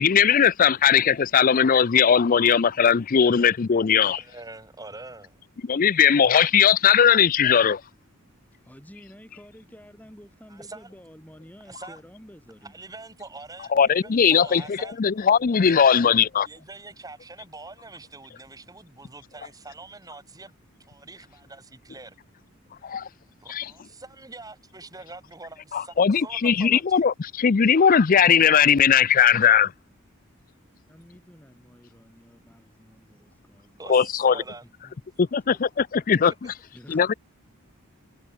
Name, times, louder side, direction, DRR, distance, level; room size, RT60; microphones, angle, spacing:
voice 1, 0.0-4.2 5.7-7.8 13.7-16.5 22.8-23.1 23.5-23.7 25.7-29.7 33.9-34.4 35.2-36.5 36.9-37.1, left 7 dB, 40° left, 0.4 m, -19 dB
voice 2, 4.0-5.4 10.5-10.9 11.6-12.0 12.6-15.0 15.6-16.1 16.4-20.6 20.9-22.2 23.4-27.0 33.8-34.7, right 3 dB, 15° right, 2.9 m, -44 dB
voice 3, 8.6-12.8 30.9-34.1 34.6-34.9 36.7-37.2, equal, 10° left, 7.2 m, -50 dB
head